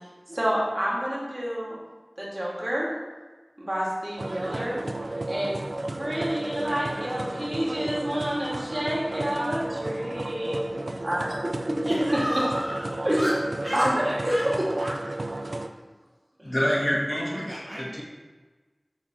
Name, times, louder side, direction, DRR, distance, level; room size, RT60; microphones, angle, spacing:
voice 1, 0.3-1.8 2.2-2.9 3.6-4.8 5.3-5.6 6.0-10.6 11.0-12.2 13.0-13.3 13.7-14.7, equal, 50° right, -5 dB, 2.4 m, -28 dB
sound 1, 4.2-15.7, right 2 dB, 80° right, 0.5 m, -33 dB
voice 2, 11.8-12.9 13.2-13.9 14.2-14.4 14.8-14.9 16.4-16.6 16.8-17.8, equal, 20° right, -7 dB, 1.5 m, -33 dB
voice 3, 16.4-18.0, equal, 35° left, -4 dB, 2.0 m, -27 dB
8.1 x 3.8 x 6.2 m, 1.3 s
wide cardioid pair, 45°, 0 cm